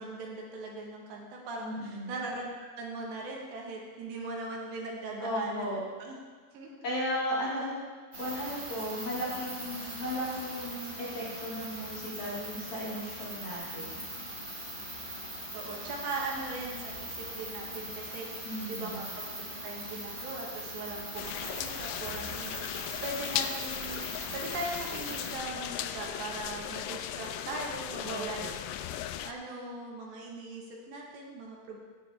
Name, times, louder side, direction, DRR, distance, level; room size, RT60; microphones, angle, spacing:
voice 1, 0.0-5.7 6.0-6.2 6.5-6.8 15.5-19.2 19.6-24.0 24.3-28.6 29.2-31.8, right 2 dB, 75° right, -1 dB, 3.6 m, -39 dB
voice 2, 1.6-2.2 5.2-5.8 6.8-7.8 8.2-14.0 18.4-19.0 28.0-28.5, equal, 45° left, -7 dB, 3.1 m, -35 dB
sound 1, 8.1-25.3, right 1 dB, 15° right, 3.8 m, -41 dB
sound 2, 21.2-29.3, left 11 dB, 80° left, 2.6 m, -37 dB
17.0 x 9.4 x 3.6 m, 1.5 s
omnidirectional pair, 5.3 m